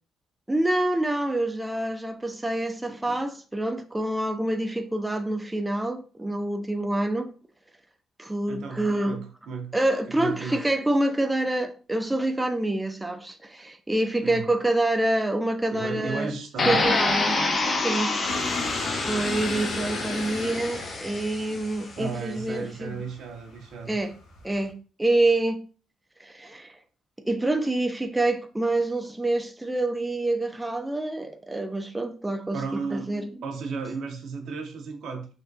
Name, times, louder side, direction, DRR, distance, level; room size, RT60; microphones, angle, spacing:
voice 1, 0.5-7.3 8.2-9.2 9.7-16.3 16.7-17.4 17.7-18.1 18.5-23.0 23.9-24.1 24.4-24.7 25.0-25.6 26.2-26.7 27.3-32.6 32.9-33.3, right 1 dB, 10° right, 0.3 m, -27 dB
voice 2, 8.5-9.7 10.1-10.6 14.2-14.5 15.7-16.8 22.0-23.9 32.5-33.1 33.4-35.3, right 5 dB, 75° right, 0.6 m, -34 dB
sound 1, 16.6-21.6, left 3 dB, 40° left, 0.5 m, -27 dB
sound 2, 18.2-24.7, left 3 dB, 85° left, 0.7 m, -36 dB
3.4 x 2.2 x 2.5 m
cardioid pair, 90°, 0 cm